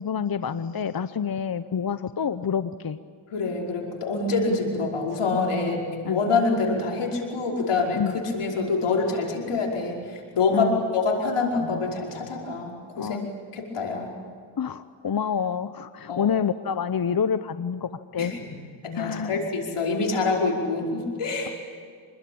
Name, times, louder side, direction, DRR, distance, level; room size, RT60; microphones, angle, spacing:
voice 1, 0.0-3.0 6.0-6.2 7.9-8.1 10.5-10.8 13.0-13.3 14.6-18.3 18.9-19.3, left 7 dB, 45° left, 12 dB, 0.9 m, -27 dB
voice 2, 3.3-13.2 13.5-14.1 16.1-16.3 18.2-18.4 18.8-21.5, left 3 dB, 90° left, -1 dB, 5.4 m, -26 dB
27.0 x 20.5 x 8.7 m, 2.1 s
cardioid pair, 55°, 49 cm